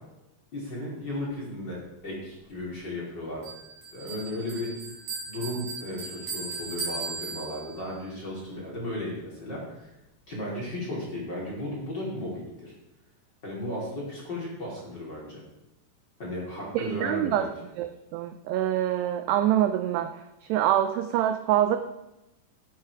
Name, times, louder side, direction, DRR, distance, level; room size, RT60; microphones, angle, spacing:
voice 1, 0.5-3.4 3.9-4.7 5.3-9.9 10.3-12.7 13.4-15.4 16.2-17.5, left 1 dB, 30° left, -4 dB, 2.6 m, -35 dB
Bell, 3.4-7.9, right 4 dB, 45° right, 4.4 m, -37 dB
voice 2, 16.8-17.5 17.8-20.2 20.5-21.8, right 11 dB, 85° right, 8 dB, 2.4 m, -25 dB
13.5 x 8.2 x 4.8 m, 0.94 s
omnidirectional pair, 5.4 m